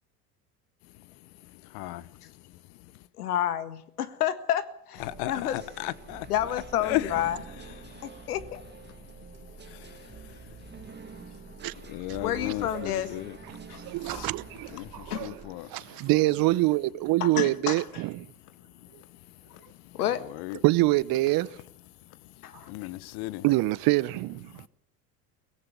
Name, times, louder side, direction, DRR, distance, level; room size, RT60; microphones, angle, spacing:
voice 1, 0.8-3.1 4.9-16.1 18.1-20.6 21.4-23.5 24.5-24.7, left 17 dB, 60° left, 1.3 m, -39 dB
voice 2, 3.2-5.0 5.3-5.6 6.3-7.3 8.0-8.6 12.2-13.1 15.1-15.2 17.2-17.8 19.9-20.2 22.4-22.7, left 11 dB, 80° left, 1.7 m, -29 dB
sound 1, 5.0-15.6, right 5 dB, 25° right, 2.1 m, -47 dB
voice 3, 13.8-14.8 15.1-15.4 15.7-18.3 18.9-19.0 20.6-21.5 23.4-24.7, right 19 dB, 50° right, 1.0 m, -25 dB
24.0 x 17.5 x 6.9 m
hypercardioid pair, 75°, 45 cm